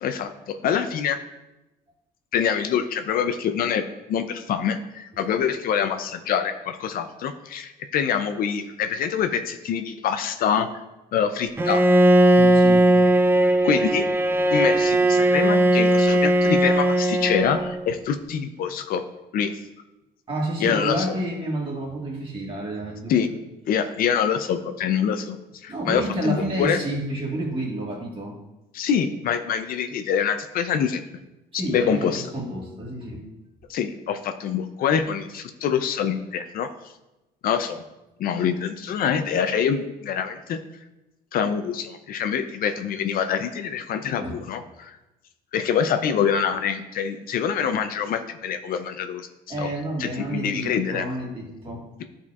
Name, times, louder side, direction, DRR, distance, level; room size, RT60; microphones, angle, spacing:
voice 1, 0.0-1.2 2.3-10.7 11.1-11.8 13.6-14.1 14.5-19.0 19.3-19.6 20.6-21.0 23.1-23.3 23.7-25.4 25.6-26.8 28.7-31.0 31.7-32.2 33.7-36.7 37.4-37.8 38.2-40.6 41.3-45.0 45.5-49.3 49.6-49.7 50.0-51.0, left 7 dB, 60° left, 8 dB, 0.5 m, -25 dB
Bowed string instrument, 11.6-17.9, right 1 dB, 15° right, 0.4 m, -18 dB
voice 2, 12.3-12.8 20.3-23.1 25.7-28.3 31.5-33.2 44.2-44.4 49.5-52.0, right 1 dB, 30° right, -2 dB, 1.7 m, -30 dB
10.5 x 4.3 x 2.4 m, 0.98 s
cardioid pair, 110°, 17 cm